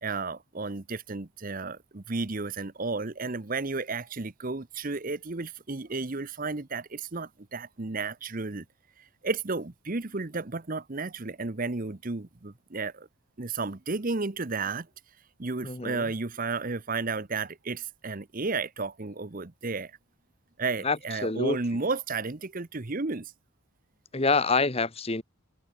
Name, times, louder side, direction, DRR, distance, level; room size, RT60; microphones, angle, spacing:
voice 1, 0.0-8.6 9.0-13.1 13.4-14.9 15.4-19.9 20.6-23.3, right 3 dB, 40° right, 0.9 m, -33 dB
voice 2, 15.6-16.0 20.8-21.0 21.2-21.6 24.1-25.2, left 3 dB, 25° left, 1.1 m, -26 dB
head